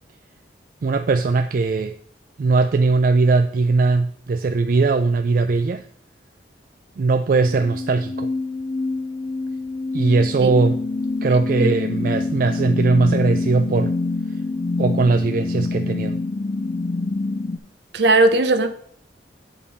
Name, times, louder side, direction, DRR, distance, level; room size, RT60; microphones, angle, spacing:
voice 1, 0.8-1.9 2.4-5.9 7.0-8.3 9.9-10.8 11.2-13.9 14.3-14.4 14.8-16.2, right 3 dB, 45° right, 0.3 m, -19 dB
sound 1, 7.4-17.6, left 3 dB, 35° left, 0.4 m, -26 dB
voice 2, 11.6-12.1 17.9-18.7, right 2 dB, 65° right, 0.8 m, -18 dB
8.4 x 5.2 x 4.1 m
head